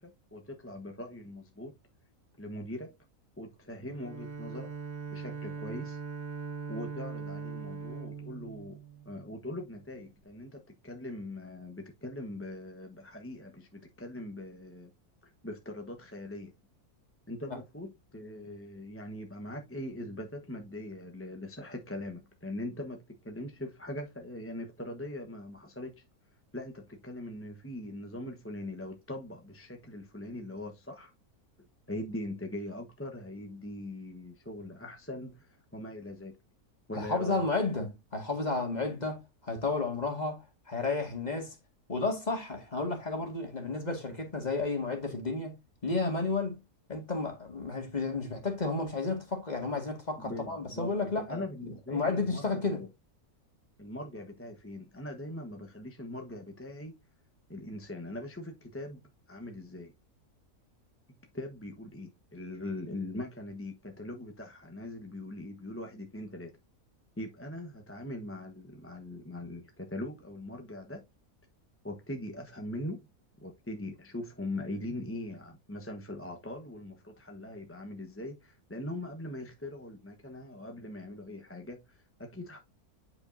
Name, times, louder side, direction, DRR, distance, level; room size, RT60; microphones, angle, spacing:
voice 1, 0.3-1.7 2.4-2.9 3.4-4.7 5.1-6.0 6.7-8.8 9.1-14.9 15.4-16.5 17.3-23.0 23.2-25.9 26.5-31.1 31.9-35.4 35.7-36.4 36.9-37.4 50.2-50.9 51.3-52.9 53.8-56.9 57.5-59.0 59.3-59.9 61.3-66.5 67.2-71.0 71.8-73.0 73.4-81.8 82.2-82.6, left 1 dB, 10° left, 1.0 m, -41 dB
Bowed string instrument, 3.9-9.5, right 5 dB, 60° right, 1.8 m, -41 dB
voice 2, 36.9-41.6 41.9-45.6 45.8-46.6 46.9-52.9, left 3 dB, 25° left, 2.1 m, -32 dB
9.5 x 5.4 x 2.6 m
omnidirectional pair, 1.6 m